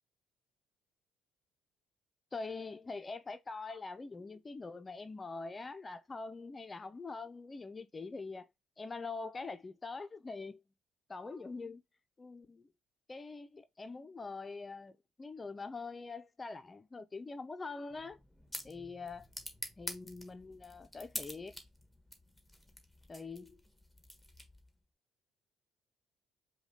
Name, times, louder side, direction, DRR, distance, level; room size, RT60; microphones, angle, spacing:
voice 1, 2.3-8.5 8.8-10.6 11.1-11.8 12.2-12.7 13.1-18.2 18.6-19.3 19.8-21.5 23.1-23.6, left 3 dB, 30° left, 0.6 m, -44 dB
sound 1, 17.9-24.8, left 1 dB, ahead, 1.2 m, -48 dB
5.0 x 2.3 x 3.7 m
supercardioid pair, 60°, 0 cm